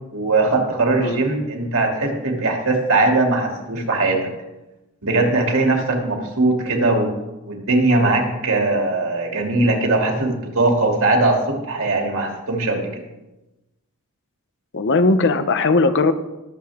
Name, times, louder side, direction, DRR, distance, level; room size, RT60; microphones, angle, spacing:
voice 1, 0.1-4.3 5.0-7.1 7.5-13.0, right 2 dB, 65° right, 1 dB, 2.6 m, -20 dB
voice 2, 14.7-16.1, left 3 dB, 55° left, 11 dB, 0.8 m, -18 dB
21.0 x 7.8 x 3.6 m, 1.0 s
head